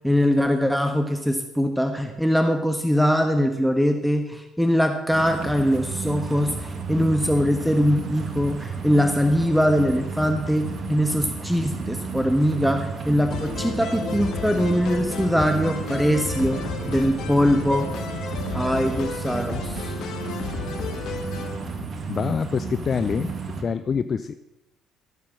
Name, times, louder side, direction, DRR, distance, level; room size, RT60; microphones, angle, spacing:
voice 1, 0.0-17.9 18.5-20.0, equal, ahead, 6 dB, 1.3 m, -22 dB
sound 1, 5.1-23.6, right 4 dB, 45° right, 2.0 m, -32 dB
sound 2, 13.3-22.3, equal, 85° left, 3.1 m, -40 dB
sound 3, 13.3-21.6, left 6 dB, 60° left, 1.6 m, -33 dB
voice 2, 22.1-23.3 23.6-24.4, left 6 dB, 40° left, 13 dB, 0.5 m, -25 dB
15.0 x 7.4 x 7.4 m, 0.99 s
hypercardioid pair, 55°, 0 cm